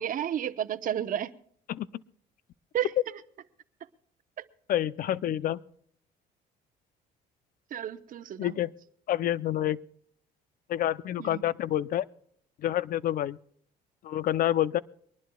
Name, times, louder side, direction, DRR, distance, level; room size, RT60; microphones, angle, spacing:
voice 1, 0.0-1.4 2.7-2.9 4.4-4.5 7.7-8.6 11.2-11.4, right 10 dB, 55° right, 0.9 m, -32 dB
voice 2, 4.7-5.6 8.4-8.7 9.1-9.8 10.7-12.0 12.6-13.4 14.0-14.8, left 12 dB, 55° left, 0.6 m, -28 dB
23.0 x 19.5 x 2.3 m
cardioid pair, 110°, 17 cm